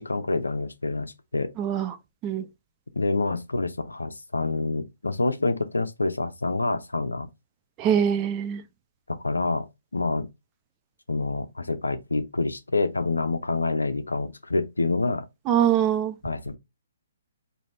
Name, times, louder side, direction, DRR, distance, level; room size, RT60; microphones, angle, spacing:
voice 1, 0.0-1.5 2.9-7.3 9.1-9.7 9.9-10.3 11.1-15.2 16.2-16.6, left 3 dB, 80° left, 0.6 m, -27 dB
voice 2, 1.6-1.9 2.2-2.5 7.8-8.6 15.5-16.2, right 9 dB, 25° right, 0.5 m, -23 dB
5.1 x 2.7 x 3.0 m
figure-of-eight pair, 130°, 0 cm